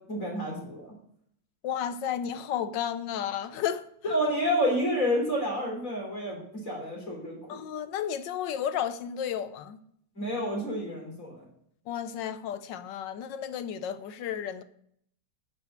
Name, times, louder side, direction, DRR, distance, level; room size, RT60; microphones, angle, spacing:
voice 1, 0.1-0.9 4.0-7.6 10.2-11.4, equal, 40° left, 3.8 m, -29 dB
voice 2, 1.6-4.1 7.5-9.8 11.9-14.6, left 9 dB, 70° left, 1.2 m, -33 dB
10.0 x 6.4 x 8.7 m
omnidirectional pair, 2.3 m